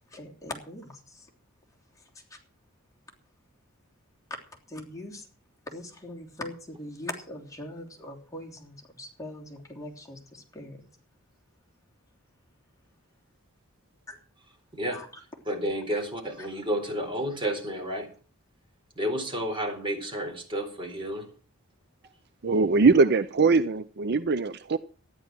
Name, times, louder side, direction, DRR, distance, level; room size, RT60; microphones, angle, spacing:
voice 1, 0.1-1.3 2.3-2.4 4.7-5.3 5.7-10.8 14.1-14.2 14.9-15.1 16.4-16.5, left 1 dB, 15° left, 3.2 m, -41 dB
voice 2, 15.5-18.1 19.0-21.3 22.5-22.6, equal, 25° right, 4.1 m, -31 dB
voice 3, 22.4-24.8, right 4 dB, 50° right, 0.5 m, -21 dB
13.5 x 10.5 x 6.2 m
head